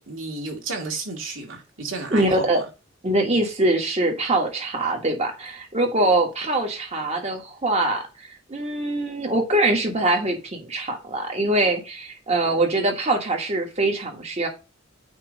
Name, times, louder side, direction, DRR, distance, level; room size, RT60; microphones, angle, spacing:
voice 1, 0.0-2.6, right 3 dB, 75° right, 2.3 m, -32 dB
voice 2, 2.1-2.6 3.0-14.5, right 2 dB, 35° right, 1.5 m, -23 dB
8.8 x 3.0 x 5.2 m
head